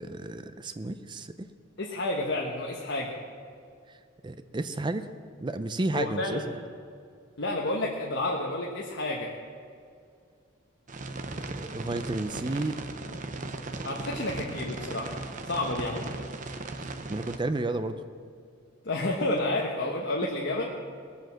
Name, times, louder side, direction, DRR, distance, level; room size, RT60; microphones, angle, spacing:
voice 1, 0.0-1.5 4.2-5.1 5.4-6.6 11.3-12.7 13.7-13.9 16.8-18.0, right 2 dB, 20° right, 10 dB, 0.5 m, -32 dB
voice 2, 1.8-3.1 5.9-6.4 7.4-9.3 13.8-15.2 15.5-16.0 18.8-20.7, left 2 dB, 55° left, -1 dB, 1.2 m, -30 dB
sound 1, 10.9-17.4, right 2 dB, 40° right, 0.8 m, -37 dB
19.5 x 7.8 x 7.5 m, 2.2 s
head